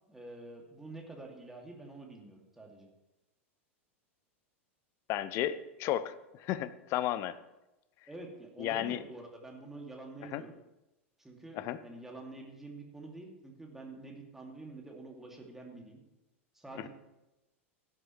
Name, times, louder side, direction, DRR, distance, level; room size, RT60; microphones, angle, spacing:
voice 1, 0.1-2.9 8.1-10.5 11.2-16.0 16.5-16.9, right 2 dB, 5° right, 0 dB, 2.5 m, -47 dB
voice 2, 5.1-7.3 8.6-9.0 10.3-10.4 11.5-11.8 16.8-16.9, left 12 dB, 40° left, 15 dB, 0.7 m, -33 dB
16.5 x 11.0 x 3.2 m, 0.96 s
figure-of-eight pair, 90°, 7 cm